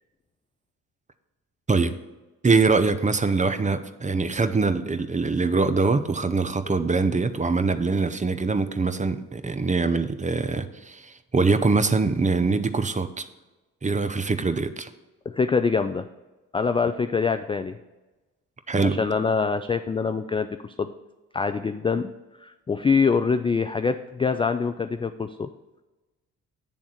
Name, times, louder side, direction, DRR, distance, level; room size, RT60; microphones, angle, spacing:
voice 1, 2.4-13.2 13.8-14.9 18.7-19.0, right 4 dB, 20° right, 10 dB, 0.6 m, -23 dB
voice 2, 15.3-16.1 16.5-17.8 18.8-20.9 21.3-22.1 22.4-25.5, left 5 dB, 15° left, 9 dB, 0.3 m, -24 dB
8.6 x 3.5 x 6.5 m, 1.1 s
hypercardioid pair, 50°, 38 cm